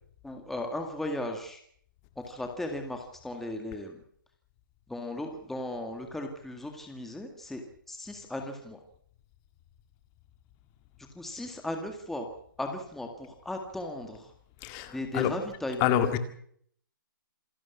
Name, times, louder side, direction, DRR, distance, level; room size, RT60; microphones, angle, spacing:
voice 1, 0.2-1.6 2.2-4.0 4.9-7.6 7.9-8.8 11.2-12.3 12.6-14.3 14.9-16.0, left 1 dB, ahead, 4 dB, 1.9 m, -36 dB
voice 2, 14.6-15.3 15.8-16.2, left 11 dB, 25° left, 9 dB, 2.0 m, -27 dB
27.0 x 12.0 x 8.4 m, 0.64 s
hypercardioid pair, 155°, 11 cm